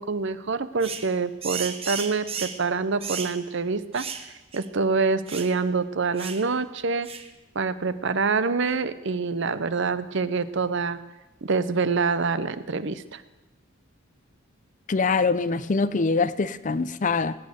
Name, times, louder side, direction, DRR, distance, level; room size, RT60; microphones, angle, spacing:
voice 1, 0.0-4.1 4.5-7.1 7.5-11.0 11.4-13.2, right 4 dB, 60° right, 14 dB, 0.7 m, -26 dB
sound 1, 0.8-1.1 1.4-2.6 3.0-3.4 3.9-4.3 4.5-4.6 5.3-5.5 6.2-6.4 7.0-7.3, right 6 dB, 30° right, 1.0 m, -34 dB
voice 2, 14.9-17.4, left 4 dB, 35° left, 16 dB, 0.5 m, -24 dB
19.5 x 9.4 x 6.7 m, 1.1 s
head